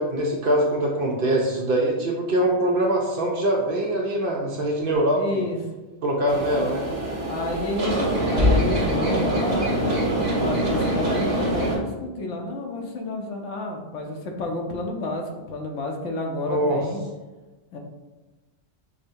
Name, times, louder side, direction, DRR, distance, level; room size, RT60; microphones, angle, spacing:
voice 1, 0.0-5.4 6.0-6.9 16.5-16.8, right 1 dB, 60° right, -1 dB, 0.6 m, -23 dB
voice 2, 5.1-5.6 7.3-17.0 17.7-17.8, left 2 dB, 80° left, 2 dB, 0.9 m, -30 dB
sound 1, 6.3-11.8, equal, 40° right, 0.9 m, -24 dB
5.0 x 2.1 x 2.6 m, 1.2 s
omnidirectional pair, 1.3 m